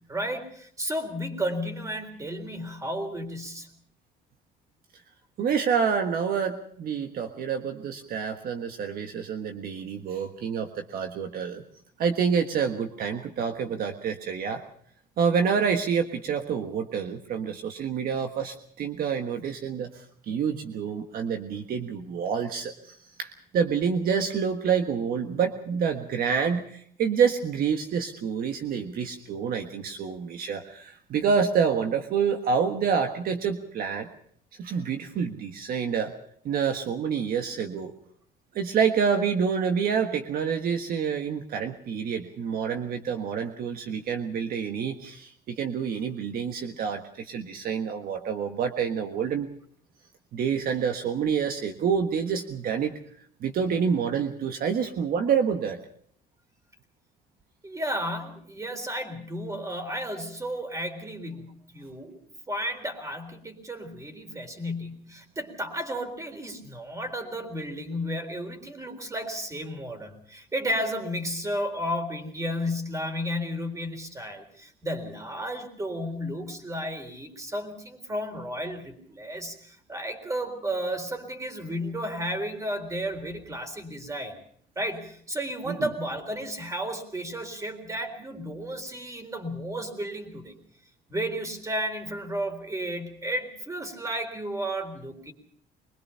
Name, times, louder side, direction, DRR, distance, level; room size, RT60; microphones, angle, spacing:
voice 1, 0.0-3.7 57.6-62.2 62.5-84.4 84.8-90.6 91.1-95.3, equal, 20° right, 7 dB, 3.8 m, -33 dB
voice 2, 5.4-11.6 12.0-14.6 15.2-34.1 34.6-36.1 36.4-37.9 38.5-49.5 50.3-52.9 53.4-55.8 85.7-85.9, right 6 dB, 60° right, 5 dB, 1.5 m, -27 dB
23.5 x 20.5 x 5.7 m, 0.63 s
cardioid pair, 110°, 17 cm